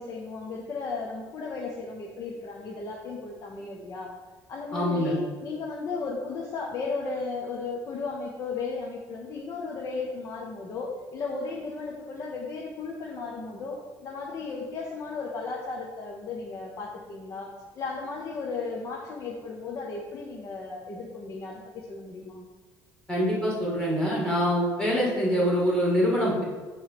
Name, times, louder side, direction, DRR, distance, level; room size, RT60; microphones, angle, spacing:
voice 1, 0.0-4.1 4.5-22.4, left 4 dB, 40° left, -2 dB, 0.8 m, -35 dB
voice 2, 4.7-5.2 23.1-26.4, equal, 10° left, -5 dB, 2.2 m, -24 dB
7.8 x 3.1 x 5.8 m, 1.5 s
cardioid pair, 160°, 8 cm